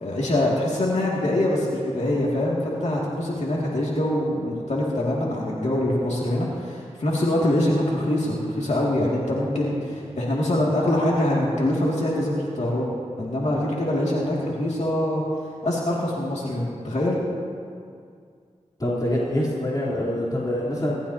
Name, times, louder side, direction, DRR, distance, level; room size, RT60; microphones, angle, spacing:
voice 1, 0.0-12.9 13.2-15.2 15.6-17.2, left 1 dB, 65° left, -5 dB, 2.4 m, -24 dB
voice 2, 18.8-21.0, left 1 dB, 30° left, -7 dB, 3.6 m, -25 dB
26.0 x 13.5 x 2.9 m, 2.2 s
cardioid pair, 55°, 12 cm